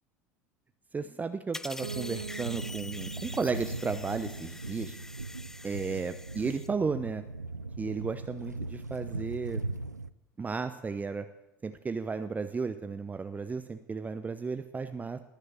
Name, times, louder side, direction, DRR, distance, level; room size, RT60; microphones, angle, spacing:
voice 1, 0.9-5.0 5.6-7.2 7.8-9.6 10.4-11.3 11.6-15.2, right 4 dB, 15° right, 10 dB, 0.8 m, -34 dB
sound 1, 1.5-6.7, left 1 dB, 5° left, 0.4 m, -45 dB
Bass guitar, 1.8-5.7, right 8 dB, 70° right, 0.9 m, -45 dB
sound 2, 1.8-10.1, right 3 dB, 90° right, 0.5 m, -39 dB
20.0 x 6.7 x 8.3 m, 0.89 s
figure-of-eight pair, 70°, 9 cm